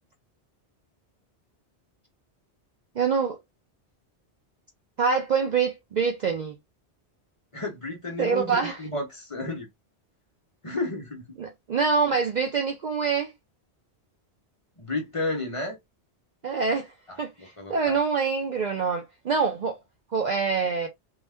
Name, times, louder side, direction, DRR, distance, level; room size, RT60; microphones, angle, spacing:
voice 1, 3.0-3.4 5.0-6.6 8.2-8.8 11.4-13.3 16.4-16.9 17.2-19.8 20.1-20.9, right 5 dB, 55° right, 0.5 m, -25 dB
voice 2, 7.5-9.7 10.6-11.2 14.8-15.8 17.4-18.0, left 2 dB, 30° left, 0.8 m, -32 dB
2.7 x 2.3 x 3.4 m
omnidirectional pair, 1.2 m